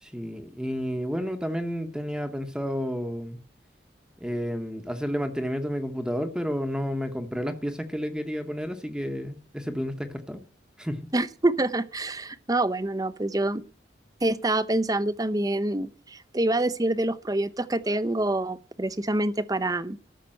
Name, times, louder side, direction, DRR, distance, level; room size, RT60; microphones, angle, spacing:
voice 1, 0.0-3.4 4.2-10.4 10.8-11.1, equal, 5° right, 1.0 m, -31 dB
voice 2, 11.1-13.6 14.2-20.0, right 2 dB, 20° right, 0.7 m, -26 dB
13.0 x 6.7 x 7.7 m
head